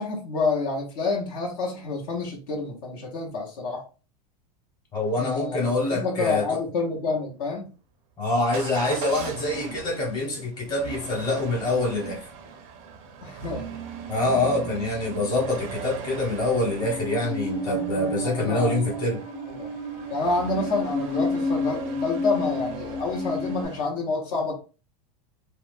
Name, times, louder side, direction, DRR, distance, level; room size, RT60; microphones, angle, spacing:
voice 1, 0.0-3.8 5.2-7.7 13.2-13.6 14.2-14.6 17.7-19.0 19.4-19.7 20.1-24.5, left 3 dB, 65° left, 0.8 m, -28 dB
voice 2, 4.9-6.4 8.2-12.2 14.1-19.2, left 2 dB, 20° left, 1.0 m, -25 dB
Motor vehicle (road) / Engine starting / Accelerating revving vroom, 8.5-23.8, right 6 dB, 35° right, 0.4 m, -39 dB
Musical instrument, 16.8-23.7, left 1 dB, 85° left, 1.3 m, -31 dB
2.3 x 2.1 x 3.2 m
supercardioid pair, 155°, 20 cm